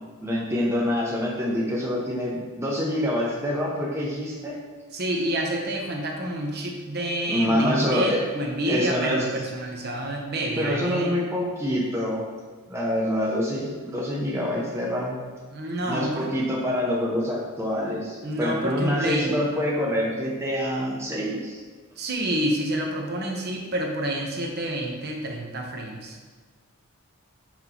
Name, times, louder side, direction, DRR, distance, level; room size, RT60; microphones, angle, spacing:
voice 1, 0.2-4.6 7.3-8.2 8.6-9.2 10.6-12.2 12.7-15.2 15.9-21.6, equal, 10° right, -4 dB, 0.7 m, -26 dB
voice 2, 4.9-11.1 15.5-16.3 18.2-19.3 22.0-26.2, right 1 dB, 50° right, 0 dB, 0.9 m, -28 dB
6.0 x 5.3 x 3.0 m, 1.5 s
head